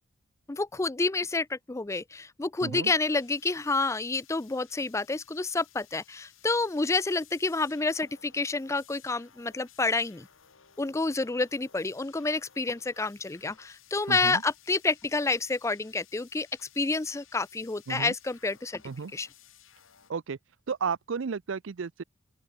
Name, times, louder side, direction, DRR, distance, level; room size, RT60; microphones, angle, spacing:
voice 1, 0.5-10.3 10.8-16.5 16.8-18.8 19.1-19.3, left 3 dB, 15° left, 0.4 m, -29 dB
voice 2, 2.6-2.9 14.1-14.4 17.9-18.1 18.8-19.1 20.1-20.4 20.7-22.0, right 5 dB, 70° right, 0.5 m, -33 dB
sound 1, 2.9-20.1, left 10 dB, 90° left, 2.7 m, -58 dB
open air
head